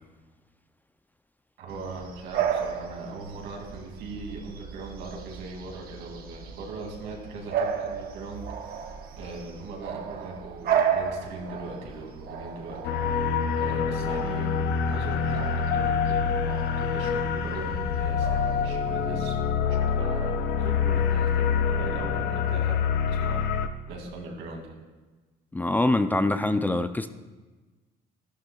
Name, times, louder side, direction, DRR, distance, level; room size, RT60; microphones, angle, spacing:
voice 1, 1.6-8.5 9.2-12.9 13.6-22.8 23.1-23.4 23.9-24.8, right 3 dB, 85° right, 2.4 m, -39 dB
Bark / Bird vocalization bird call bird song, 1.7-19.2, right 8 dB, 65° right, 1.1 m, -34 dB
sound 1, 12.8-23.7, left 6 dB, 85° left, 0.7 m, -26 dB
voice 2, 25.5-27.1, left 2 dB, 10° left, 0.4 m, -24 dB
14.5 x 11.5 x 2.3 m
cardioid pair, 110°, 17 cm